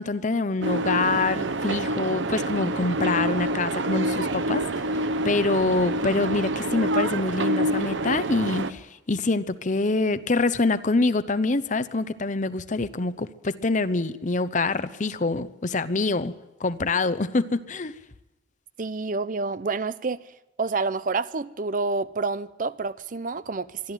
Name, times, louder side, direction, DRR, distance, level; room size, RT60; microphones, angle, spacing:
voice 1, 0.0-4.6 5.2-16.3 16.6-17.9, left 3 dB, 45° left, 0.8 m, -25 dB
sound 1, 0.6-8.7, right 1 dB, 85° right, 1.0 m, -27 dB
voice 2, 18.8-20.2 20.6-23.9, right 4 dB, 45° right, 0.6 m, -28 dB
23.0 x 13.0 x 9.1 m
head